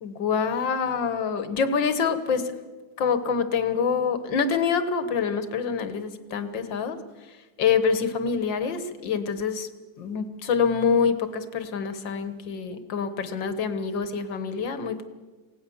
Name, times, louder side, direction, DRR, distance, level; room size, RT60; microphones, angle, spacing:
voice 1, 0.0-2.4 3.0-7.0 7.6-9.7 10.0-15.1, left 6 dB, 80° left, 10 dB, 2.0 m, -26 dB
27.5 x 18.0 x 7.1 m, 1.3 s
omnidirectional pair, 2.0 m